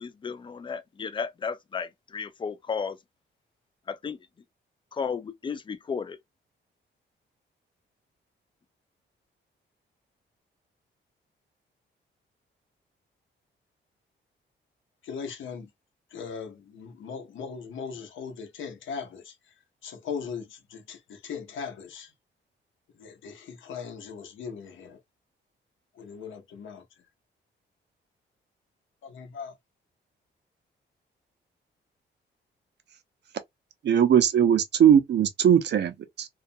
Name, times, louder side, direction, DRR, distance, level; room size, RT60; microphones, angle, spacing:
voice 1, 0.0-3.0 3.9-4.2 4.9-6.2, left 6 dB, 25° left, 0.3 m, -33 dB
voice 2, 15.0-15.7 16.1-19.3 19.8-22.1 23.0-25.0 26.0-26.8 29.0-29.6, left 6 dB, 80° left, 0.7 m, -39 dB
voice 3, 33.8-36.3, right 9 dB, 60° right, 0.6 m, -20 dB
2.3 x 2.1 x 2.5 m
cardioid pair, 100°, 20 cm